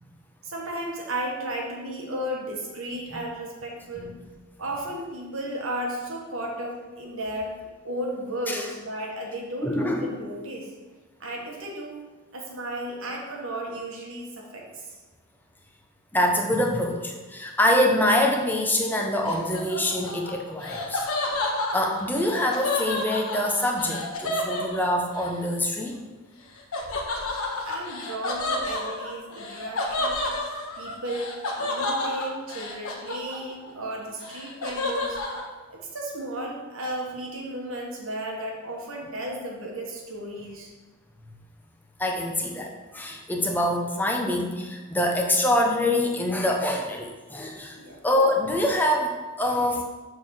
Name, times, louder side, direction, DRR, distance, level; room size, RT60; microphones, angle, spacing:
voice 1, 0.4-4.1 4.6-7.6 7.8-10.7 11.2-12.0 12.3-15.0 27.6-30.3 30.8-35.2 35.7-40.7 47.7-48.0, right 1 dB, 65° right, -1 dB, 1.4 m, -34 dB
voice 2, 9.6-10.0 16.1-21.4 21.7-26.0 42.0-47.8 48.0-49.8, left 1 dB, 10° left, 1 dB, 0.8 m, -25 dB
Laughter, 19.2-25.3 26.7-33.7 34.0-35.4, left 2 dB, 75° left, 1.3 m, -30 dB
6.6 x 3.8 x 6.3 m, 1.3 s
head